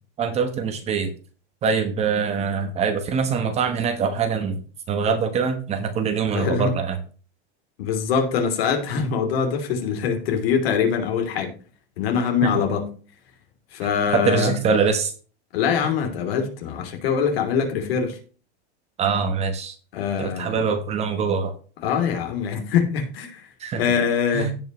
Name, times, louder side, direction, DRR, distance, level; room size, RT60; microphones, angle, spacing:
voice 1, 0.2-1.1 1.6-4.6 4.9-7.0 12.4-12.7 14.1-15.1 19.0-19.8 20.2-21.5 23.6-23.8 24.3-24.5, right 5 dB, 20° right, 1.0 m, -23 dB
voice 2, 6.3-6.7 7.8-11.5 12.0-12.9 13.7-14.5 15.5-18.2 19.9-20.6 21.8-23.5 23.7-24.5, left 7 dB, 55° left, 3.1 m, -23 dB
16.5 x 5.5 x 3.0 m
supercardioid pair, 160°, 34 cm